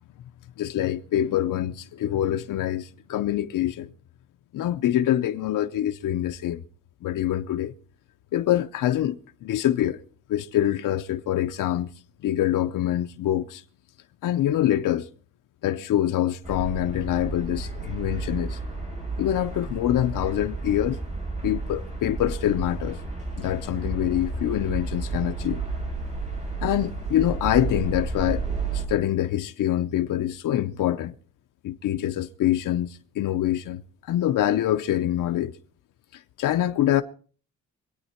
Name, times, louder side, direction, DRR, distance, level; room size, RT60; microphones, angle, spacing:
voice 1, 0.6-3.9 4.5-6.6 7.0-7.7 8.3-9.2 9.4-10.0 10.3-11.9 12.2-13.6 14.2-15.1 15.6-18.6 19.2-21.0 21.4-23.0 23.4-25.6 26.6-28.4 28.7-31.1 31.6-33.8 34.1-35.5 36.1-37.0, left 12 dB, 85° left, 0.7 m, -25 dB
sound 1, 16.4-28.9, right 3 dB, 20° right, 5.2 m, -32 dB
24.0 x 8.9 x 4.4 m
cardioid pair, 130°, 31 cm